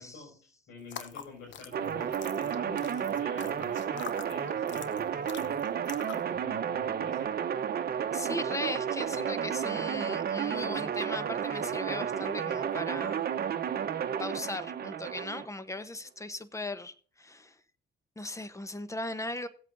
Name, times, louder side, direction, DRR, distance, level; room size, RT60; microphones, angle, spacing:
voice 1, 0.0-5.6 6.3-7.4, left 3 dB, 90° left, 6.0 m, -48 dB
sound 1, 0.8-6.3, left 9 dB, 70° left, 0.9 m, -46 dB
sound 2, 1.7-15.4, right 8 dB, 50° right, 0.9 m, -32 dB
voice 2, 8.1-13.2 14.2-17.6 18.2-19.5, left 2 dB, 15° left, 1.0 m, -38 dB
16.5 x 8.2 x 2.7 m
cardioid pair, 90°, 20 cm